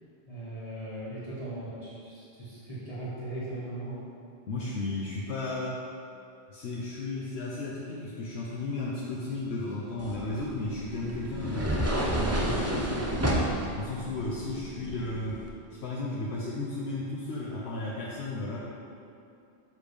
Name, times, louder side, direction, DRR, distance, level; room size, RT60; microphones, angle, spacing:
voice 1, 0.3-4.0, right 1 dB, 35° left, -10 dB, 1.4 m, -38 dB
voice 2, 4.5-5.8 6.5-13.3 13.7-15.4 15.8-18.6, left 2 dB, 85° left, -6 dB, 1.0 m, -34 dB
sound 1, 10.0-15.5, right 1 dB, 20° right, 0.5 m, -31 dB
6.7 x 3.2 x 5.1 m, 2.5 s
omnidirectional pair, 1.1 m